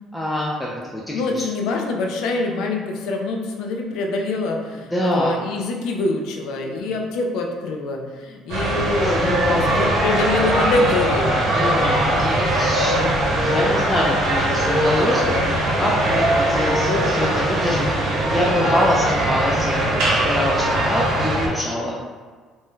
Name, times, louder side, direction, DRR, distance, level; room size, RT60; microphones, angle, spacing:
voice 1, 0.1-1.4 4.9-5.4 9.1-9.9 11.5-21.9, left 1 dB, 5° left, -4 dB, 0.3 m, -25 dB
voice 2, 1.1-11.3, left 2 dB, 80° left, 1 dB, 0.4 m, -25 dB
sound 1, 8.5-21.5, right 1 dB, 70° right, 0.9 m, -20 dB
2.6 x 2.2 x 3.5 m, 1.5 s
cardioid pair, 130°, 0 cm